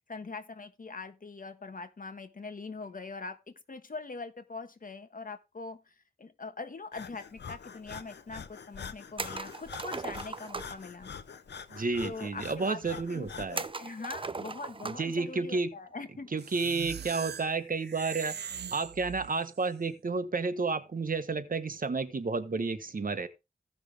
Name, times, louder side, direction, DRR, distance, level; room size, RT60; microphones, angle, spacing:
voice 1, 0.1-11.1 12.0-16.3, left 3 dB, 55° left, 1.3 m, -42 dB
Breathing, 6.9-13.7, left 6 dB, 90° left, 0.8 m, -45 dB
sound 1, 9.2-10.8 13.5-15.2 15.5-15.6 17.2-17.5, right 3 dB, 30° right, 0.6 m, -38 dB
voice 2, 11.7-13.7 14.8-15.7 16.3-18.4 18.7-23.3, right 4 dB, 55° right, 1.3 m, -31 dB
sound 2, 16.4-19.6, right 8 dB, 75° right, 0.5 m, -41 dB
16.0 x 6.0 x 3.4 m
wide cardioid pair, 75°, 17 cm